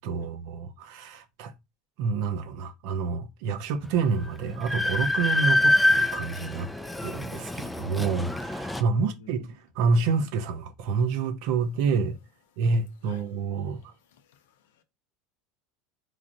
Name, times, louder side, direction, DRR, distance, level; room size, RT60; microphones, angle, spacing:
voice 1, 0.0-1.5 2.0-6.7 7.0-12.2 12.6-13.8, right 4 dB, 70° right, 0.6 m, -28 dB
Train, 3.8-3.9 4.3-8.8, left 1 dB, 5° left, 0.3 m, -25 dB
voice 2, 8.9-9.3 13.0-13.8 14.1-14.8, left 6 dB, 85° left, 0.5 m, -52 dB
3.1 x 2.5 x 2.5 m
supercardioid pair, 105°, 0 cm